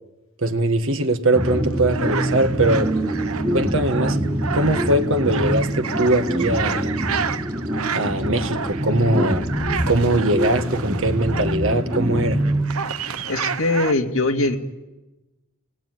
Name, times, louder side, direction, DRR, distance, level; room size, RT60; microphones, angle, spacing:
voice 1, 0.4-2.9 3.5-4.2 4.5-7.0 7.9-9.5 9.9-12.4, right 1 dB, 60° right, 1.7 m, -21 dB
sound 1, 1.3-13.2, right 1 dB, 20° right, 3.3 m, -25 dB
sound 2, 1.3-13.9, right 6 dB, 85° right, 1.1 m, -31 dB
voice 2, 13.2-14.6, left 2 dB, 65° left, 2.4 m, -21 dB
30.0 x 19.5 x 9.4 m
head